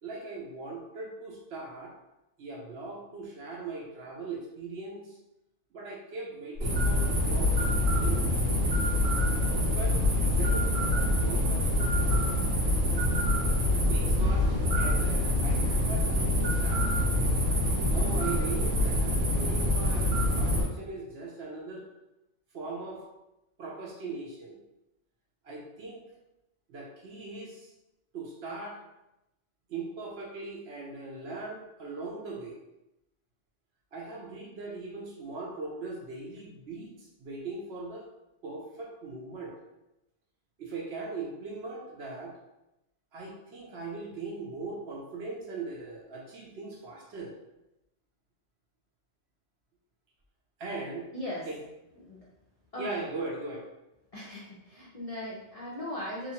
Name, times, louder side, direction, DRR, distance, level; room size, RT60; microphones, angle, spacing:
voice 1, 0.0-1.9 2.4-5.2 5.7-8.3 9.1-12.2 13.8-16.9 17.9-20.1 20.4-21.9 22.5-23.0 23.6-24.6 25.4-26.0 26.7-27.7 28.1-28.8 29.7-32.6 33.9-38.1 38.4-39.5 40.6-42.3 43.1-47.3 50.6-51.1 51.5-51.6 52.8-53.7, right 3 dB, 65° right, -2 dB, 0.8 m, -40 dB
sound 1, 6.6-20.6, left 1 dB, 85° right, 1.1 m, -26 dB
voice 2, 51.1-51.4 52.1-52.2 52.7-53.0 54.1-56.3, left 1 dB, 45° left, -6 dB, 0.4 m, -38 dB
2.8 x 2.4 x 2.8 m, 0.92 s
omnidirectional pair, 1.3 m